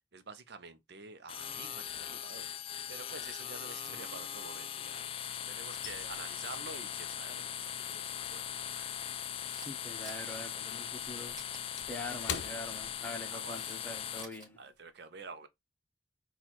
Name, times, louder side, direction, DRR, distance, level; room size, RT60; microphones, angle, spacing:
voice 1, 0.1-2.5 2.9-8.9 12.3-12.4 13.3-13.6 14.6-15.5, right 4 dB, 65° right, 0.7 m, -49 dB
sound 1, 1.3-14.2, left 9 dB, 35° left, 0.3 m, -40 dB
sound 2, 2.6-2.8 3.1-5.1 5.3-10.0 10.3-13.6 13.9-14.1 14.6-14.9, left 7 dB, 85° left, 0.6 m, -46 dB
Camera, 9.4-9.7 10.0-10.4 11.3-11.6 12.9-13.8 14.1-14.5, right 2 dB, 25° right, 2.5 m, -51 dB
voice 2, 9.6-11.4 11.9-14.6, left 2 dB, 10° left, 0.9 m, -44 dB
4.5 x 2.4 x 4.1 m
head